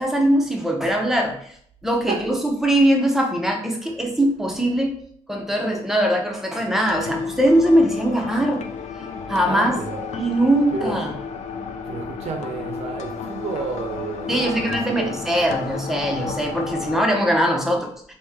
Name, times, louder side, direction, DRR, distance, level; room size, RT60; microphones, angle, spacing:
voice 1, 0.0-1.5 1.8-4.9 5.3-8.6 9.3-9.8 10.1-11.1 14.3-18.1, right 1 dB, 5° right, 0.7 m, -21 dB
sound 1, 6.8-17.0, left 6 dB, 70° left, 0.4 m, -32 dB
voice 2, 9.0-10.1 10.7-11.0 11.8-15.2, right 4 dB, 60° right, 0.6 m, -31 dB
3.0 x 2.7 x 3.5 m
cardioid pair, 90°, 12 cm